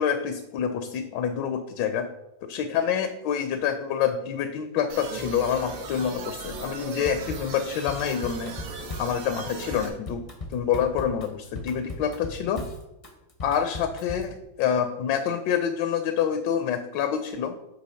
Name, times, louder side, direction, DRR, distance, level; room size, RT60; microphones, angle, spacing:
voice 1, 0.0-2.1 2.4-8.5 9.0-10.2 10.5-12.6 13.4-17.5, left 8 dB, 75° left, 8 dB, 1.2 m, -27 dB
sound 1, 4.9-9.9, right 3 dB, 75° right, 1.6 m, -38 dB
Drum kit / Drum, 7.0-14.4, left 1 dB, 40° left, 0.5 m, -38 dB
8.3 x 2.9 x 5.5 m, 0.93 s
omnidirectional pair, 2.0 m